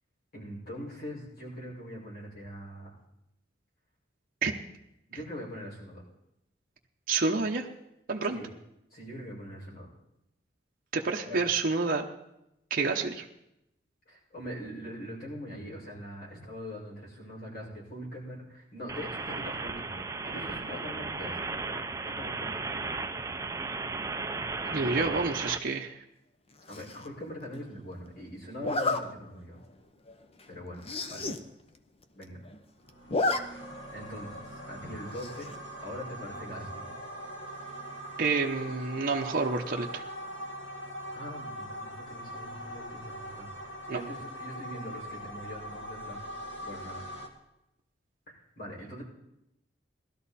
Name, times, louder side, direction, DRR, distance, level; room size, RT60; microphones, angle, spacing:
voice 1, 0.3-2.9 5.1-6.0 8.3-8.5 8.9-9.9 11.2-11.4 14.1-22.8 24.6-25.2 26.7-29.6 30.5-31.3 32.1-32.4 33.9-35.5 35.8-36.9 41.1-46.2 46.6-47.0 48.3-49.0, equal, 55° left, -4 dB, 5.5 m, -42 dB
voice 2, 7.1-7.7 8.1-8.4 10.9-12.1 12.7-13.2 24.7-25.9 38.2-40.0 43.9-44.0, right 4 dB, 50° right, 1 dB, 0.9 m, -28 dB
sound 1, 18.9-25.6, right 3 dB, 15° right, 0.5 m, -35 dB
Zipper (clothing), 26.7-27.1 28.6-29.0 29.6-29.7 30.1-30.2 30.4-30.5 30.8-31.4 31.7-31.8 32.0-32.6 32.9-33.4 33.7-33.8 35.2-35.5, left 2 dB, 35° left, 0.8 m, -30 dB
sound 2, 32.8-47.3, equal, 85° left, 2.1 m, -42 dB
18.5 x 12.5 x 4.2 m, 0.86 s
head